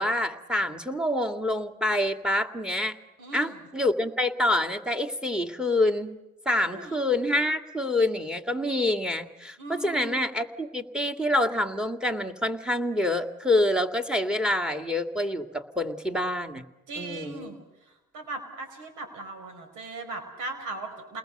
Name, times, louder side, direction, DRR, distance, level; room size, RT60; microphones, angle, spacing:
voice 1, 0.0-3.0 3.3-6.2 6.5-16.6 17.0-17.5, left 1 dB, 5° right, 7 dB, 2.2 m, -27 dB
voice 2, 3.2-3.6 6.6-7.0 9.6-10.2 16.9-17.6 18.1-21.2, right 2 dB, 90° right, 6 dB, 5.3 m, -38 dB
29.5 x 20.5 x 6.8 m, 1.0 s
cardioid pair, 90°, 30 cm